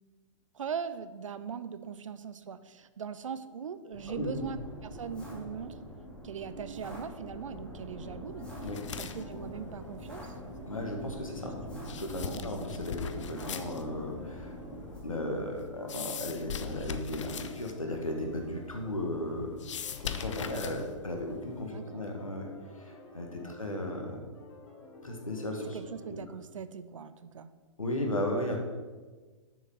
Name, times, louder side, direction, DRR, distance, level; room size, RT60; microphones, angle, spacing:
voice 1, 0.5-5.8 6.2-8.5 9.0-10.3 11.3-11.5 12.2-12.5 21.7-22.0 23.4-23.6 25.7-27.5, right 7 dB, 70° right, 13 dB, 0.5 m, -40 dB
sound 1, 3.9-15.0, equal, 5° left, 2.4 m, -44 dB
voice 2, 4.1-4.4 8.6-8.9 10.7-14.5 15.0-19.5 20.0-22.5 22.7-24.2 25.0-25.8 26.1-26.2 27.8-28.6, left 1 dB, 85° left, 2 dB, 1.7 m, -35 dB
sound 2, 7.5-26.1, left 1 dB, 45° left, 2.4 m, -52 dB
sound 3, 8.6-21.7, left 8 dB, 65° left, 0.6 m, -43 dB
6.9 x 6.3 x 5.6 m, 1.3 s
figure-of-eight pair, 115°, 17 cm